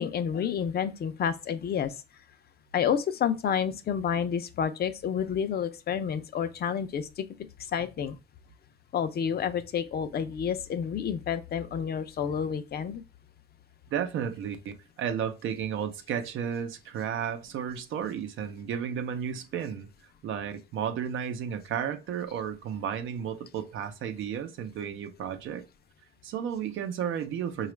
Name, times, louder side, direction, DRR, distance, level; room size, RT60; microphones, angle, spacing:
voice 1, 0.0-1.9 2.7-7.3 7.7-8.2 8.9-13.0, left 8 dB, 50° left, 0.5 m, -29 dB
voice 2, 13.9-14.7 15.0-19.9 20.2-25.6 26.2-27.7, right 8 dB, 80° right, 0.6 m, -33 dB
4.9 x 2.4 x 3.1 m
cardioid pair, 90°, 20 cm